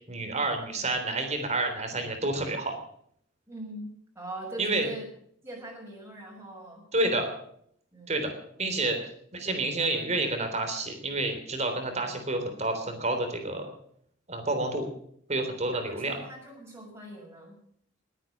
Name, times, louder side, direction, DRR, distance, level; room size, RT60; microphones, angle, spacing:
voice 1, 0.1-2.7 4.6-4.9 6.9-7.3 8.1-8.3 8.6-9.0 9.3-13.7 14.3-14.9 15.3-16.2, right 2 dB, 35° right, 6 dB, 3.6 m, -29 dB
voice 2, 3.5-5.1 5.4-6.9 7.9-8.2 15.7-17.6, right 1 dB, 15° right, -2 dB, 5.9 m, -41 dB
20.5 x 9.2 x 7.3 m, 0.66 s
head